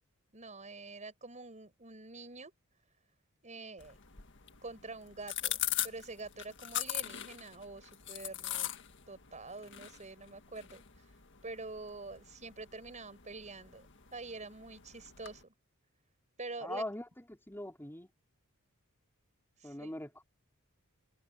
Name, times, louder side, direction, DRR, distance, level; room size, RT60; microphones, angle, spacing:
voice 1, 0.3-2.5 3.4-4.0 4.6-8.8 9.1-10.8 11.4-15.5 16.4-16.8 19.6-19.9, right 3 dB, 35° right, 6.8 m, -46 dB
sound 1, 3.8-15.4, left 12 dB, 55° left, 1.8 m, -42 dB
voice 2, 16.6-18.1 19.6-20.2, left 1 dB, 10° left, 5.2 m, -41 dB
head